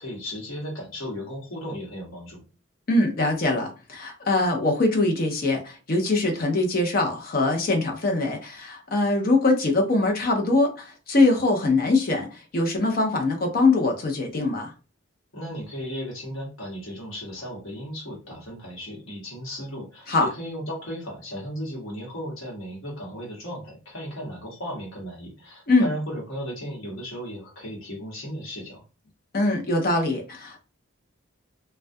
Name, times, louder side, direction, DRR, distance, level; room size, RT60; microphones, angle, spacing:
voice 1, 0.0-2.4 15.3-28.8, equal, 75° left, 1.0 m, -35 dB
voice 2, 2.9-14.7 20.1-20.3 25.7-25.9 29.3-30.6, left 2 dB, 45° left, 0.5 m, -22 dB
2.2 x 2.2 x 2.6 m
head